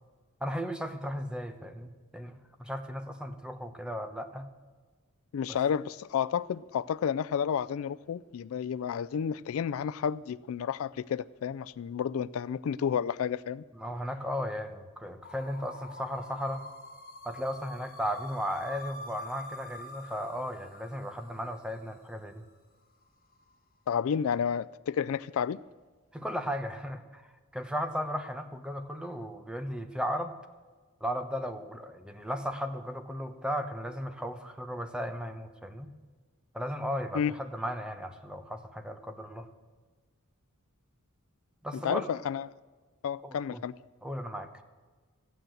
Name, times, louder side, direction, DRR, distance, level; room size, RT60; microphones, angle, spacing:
voice 1, 0.4-4.5 5.5-5.6 13.7-16.7 17.2-22.4 26.1-30.3 31.0-35.9 36.5-39.5 41.6-42.1 43.2-43.6 44.0-44.6, equal, 5° right, 0.9 m, -36 dB
voice 2, 5.3-13.6 23.9-25.6 37.1-37.3 41.8-42.5 43.0-43.7, left 7 dB, 70° left, 0.3 m, -31 dB
Futuristic Space Sound, 15.2-22.2, left 1 dB, 45° left, 1.7 m, -46 dB
14.5 x 9.4 x 7.7 m
head